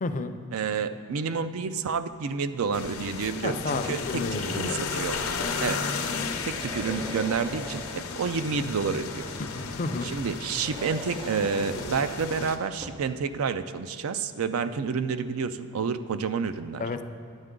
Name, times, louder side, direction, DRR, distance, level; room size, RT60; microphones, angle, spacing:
voice 1, 0.0-0.4 3.4-4.8 9.5-10.1 16.8-17.0, left 3 dB, 35° left, 9 dB, 0.4 m, -31 dB
voice 2, 0.5-5.2 5.6-5.8 6.5-9.2 10.0-16.9, right 5 dB, 75° right, 11 dB, 0.4 m, -29 dB
sound 1, 2.7-12.6, left 5 dB, 85° left, 0.7 m, -34 dB
sound 2, 6.4-8.2 10.4-13.1, right 1 dB, 25° right, 0.6 m, -42 dB
10.5 x 8.0 x 3.7 m, 2.6 s
head